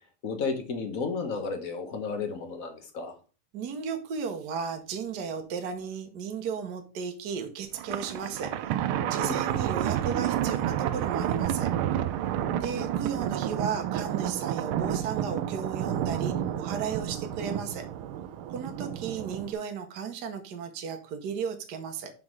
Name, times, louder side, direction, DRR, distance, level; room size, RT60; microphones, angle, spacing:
voice 1, 0.2-3.2 9.2-9.4, left 4 dB, 45° left, 5 dB, 1.5 m, -32 dB
voice 2, 3.5-8.5 9.1-11.7 12.6-17.9 18.5-22.1, right 6 dB, 60° right, 5 dB, 1.3 m, -35 dB
Thunder, 7.7-19.5, right 10 dB, 80° right, 1.5 m, -30 dB
5.8 x 5.4 x 4.6 m, 0.35 s
omnidirectional pair, 2.3 m